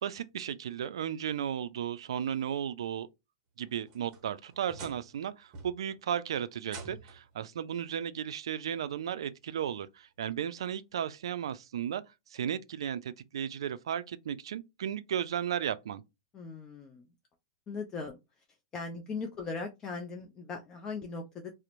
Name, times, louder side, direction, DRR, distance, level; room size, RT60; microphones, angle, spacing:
voice 1, 0.0-3.1 3.6-12.0 12.3-16.0, right 9 dB, 75° right, 0.3 m, -35 dB
sound 1, 3.6-5.2 5.5-6.0 6.6-7.3 8.5-8.6 9.2-9.3 10.9-11.0, right 4 dB, 35° right, 0.8 m, -47 dB
voice 2, 16.3-17.1 17.7-18.2 18.7-21.5, left 4 dB, 25° left, 0.4 m, -39 dB
2.8 x 2.0 x 2.4 m
hypercardioid pair, 125°, 3 cm